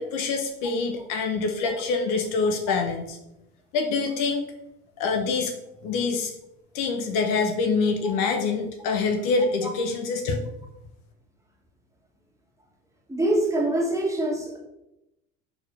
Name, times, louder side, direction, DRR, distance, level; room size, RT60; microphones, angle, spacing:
voice 1, 0.0-3.2 3.7-4.4 5.0-5.5 5.8-6.3 6.7-10.4, left 4 dB, 55° left, 4 dB, 0.9 m, -25 dB
voice 2, 13.1-14.6, right 1 dB, 5° right, -2 dB, 1.7 m, -25 dB
6.3 x 4.7 x 3.3 m, 0.89 s
figure-of-eight pair, 65°, 40 cm